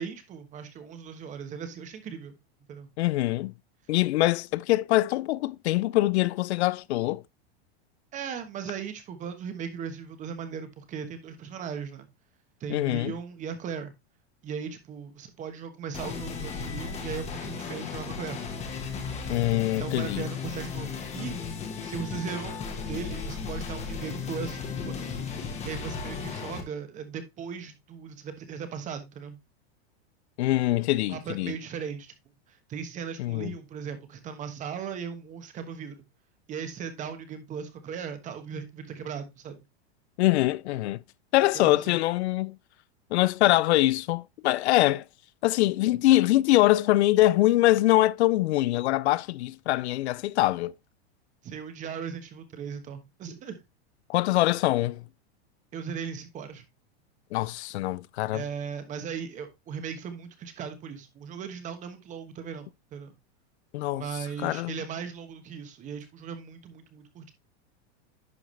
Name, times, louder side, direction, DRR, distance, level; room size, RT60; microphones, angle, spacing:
voice 1, 0.0-2.3 2.7-2.9 8.1-12.1 12.6-13.9 14.4-18.4 19.8-21.4 21.8-25.1 25.6-29.4 31.1-32.1 32.5-36.0 36.5-39.6 41.5-42.0 51.4-53.6 55.7-56.6 58.3-63.1 63.9-67.3, right 7 dB, 25° right, 1.2 m, -38 dB
voice 2, 3.0-3.5 3.9-7.2 12.7-13.1 19.3-20.2 30.4-31.6 33.2-33.5 40.2-41.0 41.3-42.6 43.1-45.0 45.4-50.7 54.1-55.0 57.3-58.4 63.7-64.1 64.4-64.8, left 16 dB, 85° left, 0.5 m, -24 dB
sound 1, 15.9-26.6, left 5 dB, 20° left, 1.4 m, -35 dB
11.0 x 4.7 x 3.2 m
supercardioid pair, 160°, 32 cm